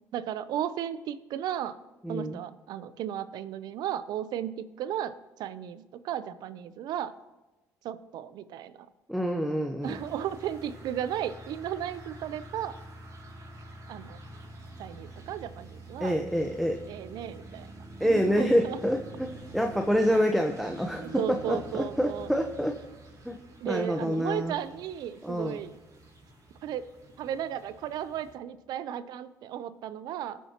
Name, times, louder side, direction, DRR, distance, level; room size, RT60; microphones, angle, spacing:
voice 1, 0.0-1.8 2.1-7.1 7.8-8.9 9.8-12.8 13.9-14.2 14.8-16.2 16.9-17.7 18.0-18.8 20.1-20.3 21.0-22.3 23.6-25.7 26.6-26.9 27.2-30.4, right 10 dB, 70° right, 14 dB, 0.6 m, -35 dB
voice 2, 2.0-2.4 9.1-10.0 16.0-16.8 18.0-22.7 23.2-23.3 23.6-24.5 25.2-25.6, equal, ahead, 4 dB, 1.0 m, -27 dB
sound 1, 9.8-28.3, right 1 dB, 50° right, 4.3 m, -47 dB
20.5 x 7.3 x 3.0 m, 1.1 s
supercardioid pair, 65°, 7 cm